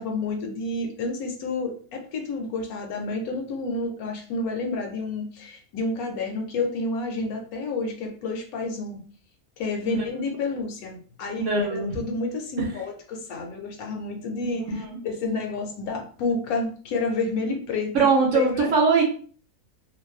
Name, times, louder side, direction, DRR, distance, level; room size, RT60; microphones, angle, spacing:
voice 1, 0.0-9.0 9.6-17.9 18.3-18.7, left 3 dB, 75° left, 2 dB, 1.0 m, -30 dB
voice 2, 11.4-11.9 17.9-19.0, right 4 dB, 65° right, 0 dB, 0.8 m, -21 dB
2.6 x 2.1 x 2.3 m, 0.44 s
omnidirectional pair, 1.6 m